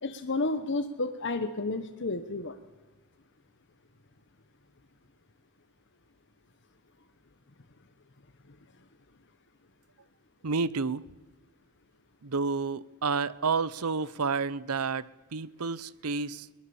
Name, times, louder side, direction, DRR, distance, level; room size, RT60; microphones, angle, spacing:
voice 1, 0.0-2.6, left 2 dB, 55° left, 8 dB, 1.1 m, -31 dB
voice 2, 10.4-11.0 12.2-15.1 15.3-16.5, right 4 dB, 80° right, 19 dB, 0.8 m, -30 dB
22.5 x 19.5 x 7.1 m, 1.2 s
head